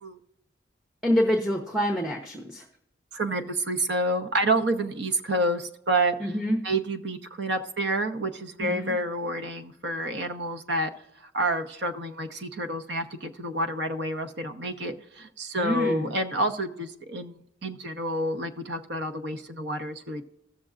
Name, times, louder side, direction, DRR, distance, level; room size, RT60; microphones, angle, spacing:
voice 1, 1.0-2.6 6.2-6.6 8.6-9.0 15.6-16.0, equal, ahead, 1 dB, 0.8 m, -26 dB
voice 2, 3.1-6.3 6.6-10.9 11.3-20.2, right 1 dB, 60° right, 6 dB, 0.9 m, -29 dB
16.5 x 6.7 x 2.5 m, 0.82 s
head